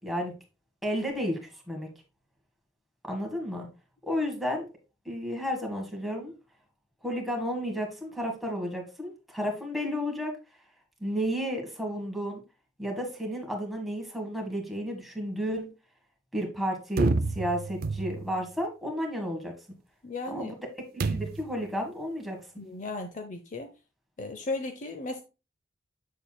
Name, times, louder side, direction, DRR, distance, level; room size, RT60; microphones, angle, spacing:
voice 1, 0.0-0.3 0.8-1.9 3.1-3.7 4.1-4.7 5.1-6.3 7.0-10.3 11.0-12.4 12.8-15.7 16.3-19.5 20.3-20.5 20.9-22.4, equal, ahead, 0 dB, 1.6 m, -32 dB
sound 1, 17.0-18.4 21.0-21.6, right 3 dB, 50° right, 0.4 m, -29 dB
voice 2, 20.0-20.5 22.6-23.7 24.2-25.2, left 2 dB, 40° left, 7 dB, 0.6 m, -35 dB
7.4 x 6.8 x 2.3 m, 0.30 s
head